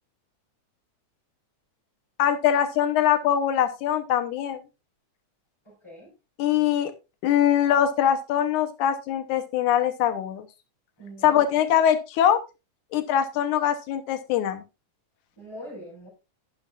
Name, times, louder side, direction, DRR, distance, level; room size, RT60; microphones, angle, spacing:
voice 1, 2.2-4.6 6.4-6.9 7.2-10.5 11.2-12.4 12.9-14.6, left 10 dB, 85° left, 9 dB, 2.3 m, -22 dB
voice 2, 5.6-6.1 11.0-11.4 15.4-16.1, equal, 10° left, -8 dB, 4.8 m, -42 dB
11.5 x 9.5 x 2.5 m, 0.27 s
omnidirectional pair, 3.5 m